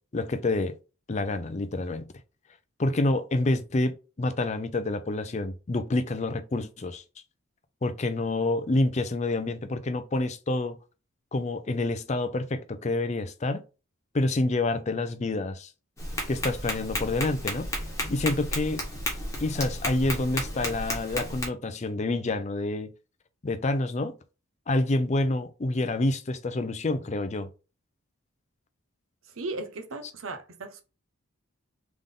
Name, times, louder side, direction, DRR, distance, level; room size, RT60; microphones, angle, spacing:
voice 1, 0.1-0.7 1.1-2.1 2.8-7.0 7.8-10.8 11.3-13.6 14.1-15.7 16.3-17.6 18.1-18.8 19.4-22.9 23.4-24.1 24.7-27.5, left 2 dB, 35° left, 0.5 m, -28 dB
Tap, 16.0-21.5, left 1 dB, 15° left, 1.3 m, -33 dB
voice 2, 29.4-30.8, right 2 dB, 75° right, 0.8 m, -36 dB
3.7 x 3.5 x 3.7 m
head